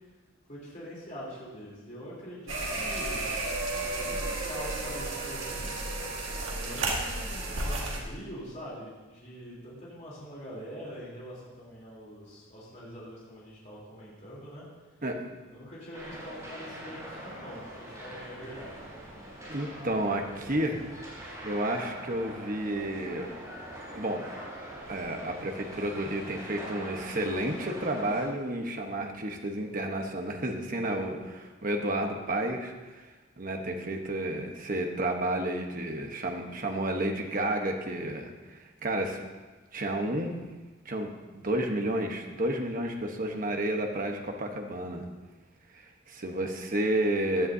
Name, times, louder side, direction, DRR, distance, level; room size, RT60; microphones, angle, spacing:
voice 1, 0.5-3.3 3.9-5.7 6.5-14.6 15.5-18.9, equal, 35° left, -6 dB, 3.6 m, -44 dB
sound 1, 2.5-8.0, right 2 dB, 65° right, 1.9 m, -32 dB
sound 2, 15.9-28.2, right 1 dB, 15° right, 3.8 m, -43 dB
voice 2, 19.5-20.8 21.4-23.3 23.9-24.2 24.9-39.2 39.7-40.4 40.8-45.1 45.7-47.5, right 1 dB, 40° right, 3 dB, 1.2 m, -31 dB
16.0 x 10.5 x 2.8 m, 1.3 s
head